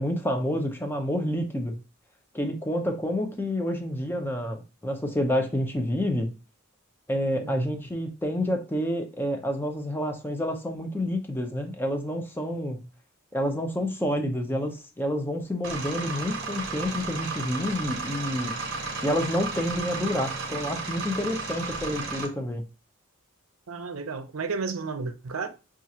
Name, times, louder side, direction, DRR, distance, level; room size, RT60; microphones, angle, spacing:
voice 1, 0.0-1.7 2.3-6.3 7.1-12.8 13.3-18.6 19.0-22.6, equal, 10° left, 0.5 m, -28 dB
voice 2, 7.4-7.7 23.7-25.5, right 4 dB, 70° right, 0.6 m, -32 dB
sound 1, 15.6-22.3, right 4 dB, 55° right, 1.2 m, -33 dB
6.0 x 2.4 x 2.7 m
head